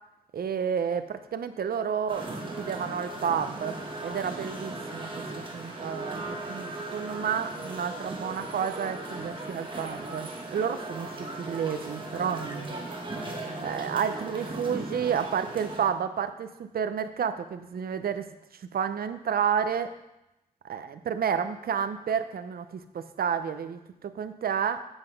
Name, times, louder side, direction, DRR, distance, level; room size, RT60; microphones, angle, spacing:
voice 1, 0.3-2.2 2.6-6.2 6.5-12.8 13.6-18.3 18.7-19.9 20.6-24.8, right 7 dB, 85° right, 10 dB, 0.6 m, -30 dB
sound 1, 2.1-15.8, right 2 dB, 35° right, 1.3 m, -37 dB
7.9 x 5.9 x 5.2 m, 0.91 s
wide cardioid pair, 140°, 15 cm